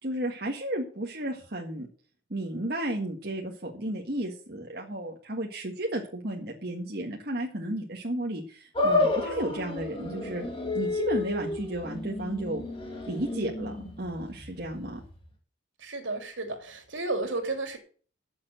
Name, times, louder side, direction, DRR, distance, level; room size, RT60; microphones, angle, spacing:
voice 1, 0.0-1.9 2.3-10.4 10.7-12.6 13.1-15.0, right 1 dB, 50° right, -1 dB, 1.7 m, -33 dB
sound 1, 8.7-15.2, left 2 dB, 25° left, 2.6 m, -31 dB
voice 2, 15.8-17.8, right 2 dB, 75° right, 4 dB, 3.0 m, -32 dB
9.2 x 7.3 x 7.7 m, 0.42 s
head